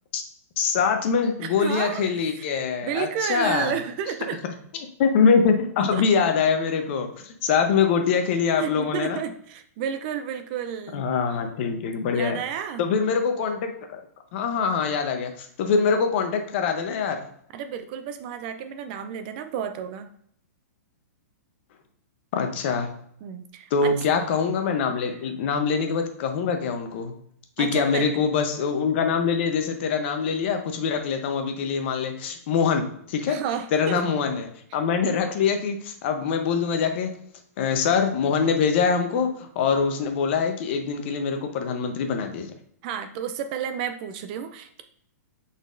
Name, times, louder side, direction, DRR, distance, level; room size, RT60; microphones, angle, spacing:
voice 1, 0.6-3.7 5.0-9.2 10.9-12.4 12.8-14.0 14.3-17.2 22.3-22.9 23.7-27.1 27.6-33.4 33.7-37.1 37.6-42.5, left 6 dB, 45° left, 6 dB, 0.7 m, -24 dB
voice 2, 1.4-2.5 2.8-4.4 5.9-6.1 8.5-11.1 12.1-12.8 17.5-20.1 23.2-24.0 25.1-25.2 27.6-28.1 33.3-34.0 34.7-34.8 42.8-44.8, right 8 dB, 35° right, 10 dB, 0.3 m, -31 dB
5.2 x 4.0 x 2.5 m, 0.66 s
hypercardioid pair, 155°, 9 cm